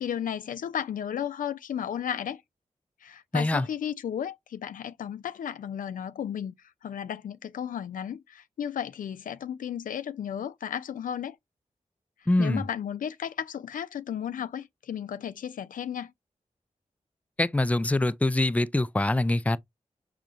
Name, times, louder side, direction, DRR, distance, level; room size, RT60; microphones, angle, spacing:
voice 1, 0.0-2.4 3.0-6.5 6.8-11.4 12.4-16.1, left 9 dB, 90° left, 0.4 m, -34 dB
voice 2, 3.3-3.7 12.3-12.6 17.4-19.6, left 2 dB, 10° left, 0.4 m, -24 dB
4.8 x 2.7 x 2.4 m
cardioid pair, 40°, 14 cm